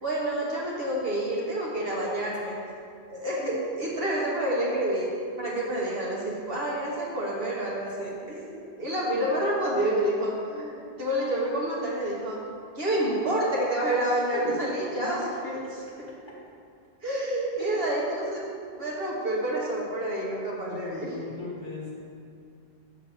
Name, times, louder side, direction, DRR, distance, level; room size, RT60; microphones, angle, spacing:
voice 1, 0.0-2.6 3.1-12.4 12.7-16.1 17.0-18.5 18.8-21.2, right 1 dB, 65° right, -4 dB, 1.5 m, -29 dB
voice 2, 20.6-21.9, left 4 dB, 25° left, -6 dB, 1.6 m, -37 dB
7.1 x 3.9 x 6.3 m, 2.5 s
omnidirectional pair, 1.1 m